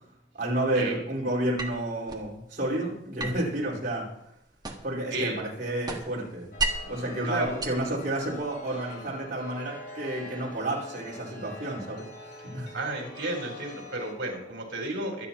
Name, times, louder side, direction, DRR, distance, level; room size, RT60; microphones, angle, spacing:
voice 1, 0.3-4.1 4.8-6.5 6.9-12.7, right 1 dB, 50° right, -4 dB, 4.8 m, -31 dB
sound 1, 1.6-2.3 3.2-5.1 5.4-7.0 7.4-8.5, right 2 dB, 20° right, 1.5 m, -34 dB
Chime, 6.5-14.1, left 1 dB, 55° left, 3.7 m, -45 dB
voice 2, 7.2-7.6 12.5-15.3, right 2 dB, 70° right, 0 dB, 4.1 m, -32 dB
23.5 x 9.5 x 3.0 m, 0.79 s
head